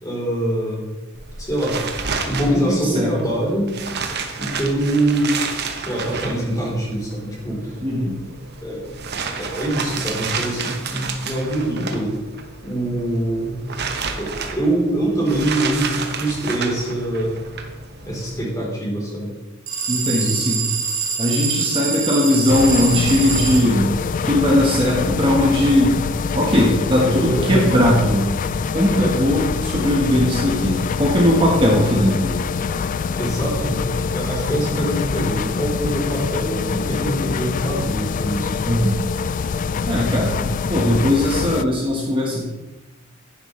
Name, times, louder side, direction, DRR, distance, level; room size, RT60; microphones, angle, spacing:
voice 1, 0.0-0.8 1.4-1.8 2.2-3.7 4.4-5.5 5.9-7.8 8.6-8.8 9.3-12.1 12.6-13.6 14.2-17.4 18.0-19.3 20.1-20.4 27.1-27.7 29.0-29.1 33.1-38.6, right 1 dB, 15° left, -4 dB, 3.8 m, -24 dB
sound 1, 1.1-18.4, right 5 dB, 55° right, 1.1 m, -31 dB
voice 2, 2.4-3.4 7.8-8.1 19.9-20.7 21.2-23.9 24.2-26.0 26.3-28.3 28.7-32.4 38.6-39.0 39.9-42.4, left 1 dB, 25° right, -3 dB, 1.5 m, -19 dB
sound 2, 19.7-23.6, right 6 dB, 80° right, 1.5 m, -24 dB
sound 3, 22.5-41.6, left 5 dB, 40° left, 0.3 m, -24 dB
10.5 x 9.9 x 3.3 m, 1.1 s
head